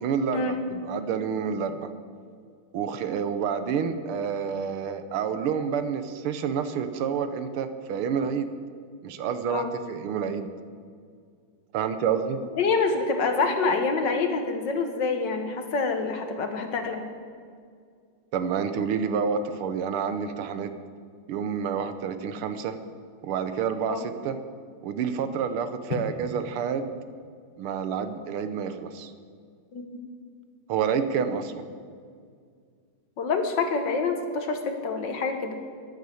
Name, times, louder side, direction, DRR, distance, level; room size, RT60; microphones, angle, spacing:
voice 1, 0.0-1.9 2.7-8.5 9.0-10.5 11.7-12.4 18.3-20.7 21.3-22.8 23.2-24.4 24.8-26.9 27.6-29.1 30.7-31.7, right 7 dB, 80° right, 10 dB, 1.7 m, -28 dB
voice 2, 12.6-17.0 23.9-24.0 29.7-30.0 33.2-35.6, left 4 dB, 55° left, 6 dB, 1.8 m, -26 dB
11.0 x 11.0 x 8.4 m, 2.1 s
omnidirectional pair, 2.4 m